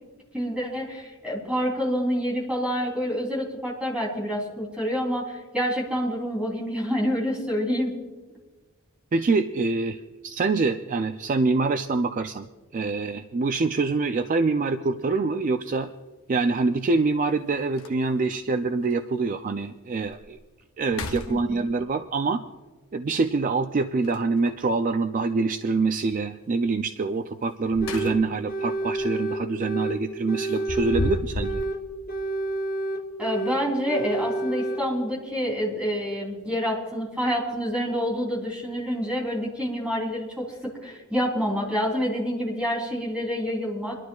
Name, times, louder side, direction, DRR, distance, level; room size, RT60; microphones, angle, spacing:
voice 1, 0.3-8.0 21.3-21.7 33.2-44.0, equal, 5° right, -4 dB, 3.1 m, -27 dB
voice 2, 9.1-12.5 12.7-15.9 16.3-20.4 20.8-22.4 22.9-31.6, right 3 dB, 35° right, 8 dB, 0.3 m, -25 dB
sound 1, 15.0-15.2 16.9-17.0 17.4-17.5 17.8-18.3 18.9-19.0 19.5-19.6 20.0-20.4 20.8-21.9 24.0-24.7 27.4-28.5 28.8-29.1 30.4-31.7, left 2 dB, 70° left, 0.8 m, -34 dB
sound 2, 27.8-28.2 28.5-30.0 30.3-31.8 32.1-33.6 33.9-34.8, right 2 dB, 40° left, 1.0 m, -29 dB
28.0 x 11.5 x 2.3 m, 1.3 s
head